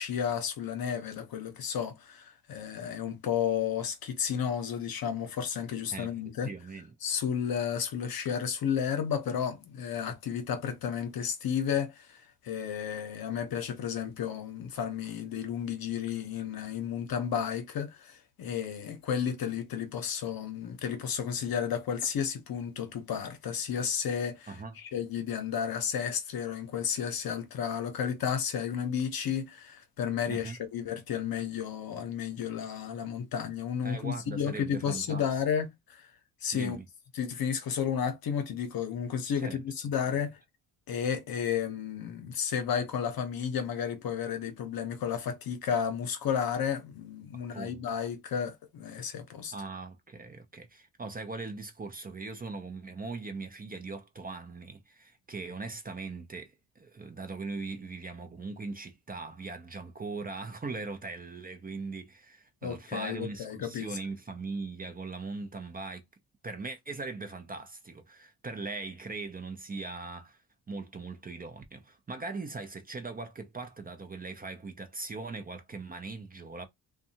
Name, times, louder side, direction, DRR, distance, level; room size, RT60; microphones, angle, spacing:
voice 1, 0.0-6.5 7.0-36.1 36.4-36.8 37.1-40.4 40.9-49.5 62.6-64.0, left 8 dB, 60° left, 0.8 m, -32 dB
voice 2, 6.4-6.9 24.5-24.7 30.3-30.6 33.8-35.3 36.5-36.8 39.4-39.6 47.3-47.9 49.5-66.0 66.4-70.4 70.7-76.6, right 3 dB, 20° right, 0.5 m, -40 dB
2.6 x 2.3 x 2.8 m
cardioid pair, 95°, 41 cm